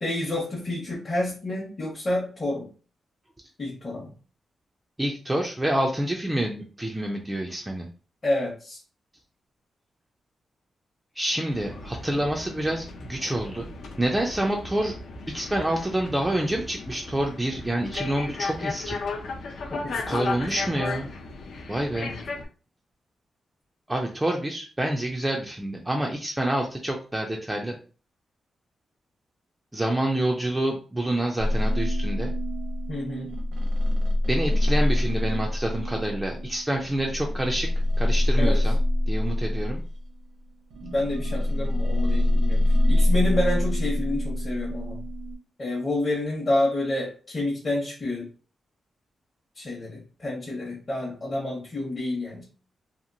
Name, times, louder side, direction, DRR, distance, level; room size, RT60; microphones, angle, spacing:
voice 1, 0.0-2.7 3.6-4.1 8.2-8.8 19.7-20.8 21.9-22.1 32.9-33.3 38.4-38.6 40.8-42.6 42.9-45.0 45.6-48.3 49.6-52.4, left 1 dB, 30° left, -5 dB, 0.7 m, -29 dB
voice 2, 5.0-7.9 11.2-13.7 14.0-14.9 15.3-19.0 20.1-21.1 21.7-22.1 23.9-27.8 29.7-32.3 34.3-37.7 38.0-38.8 39.1-39.8, right 1 dB, 10° right, 0 dB, 0.3 m, -27 dB
sound 1, 11.5-22.4, left 3 dB, 70° left, 0.4 m, -35 dB
sound 2, 31.4-40.1 40.7-45.4, left 1 dB, 85° right, 0.7 m, -25 dB
2.8 x 2.4 x 2.6 m, 0.38 s
wide cardioid pair, 160°, 0 cm